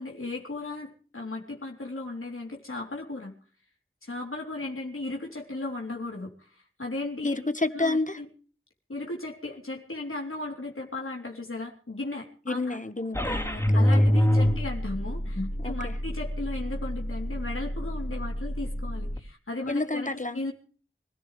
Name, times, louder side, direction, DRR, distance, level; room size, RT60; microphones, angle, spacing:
voice 1, 0.0-3.4 4.0-7.4 7.7-8.3 8.9-12.8 13.7-20.5, left 2 dB, 85° left, 3.5 m, -36 dB
voice 2, 7.2-8.2 12.5-13.8 14.5-14.6 15.4-15.9 19.7-20.4, left 2 dB, 40° left, 1.4 m, -30 dB
sound 1, 13.1-19.2, equal, 15° left, 3.3 m, -26 dB
25.5 x 14.5 x 3.3 m
wide cardioid pair, 50°, 21 cm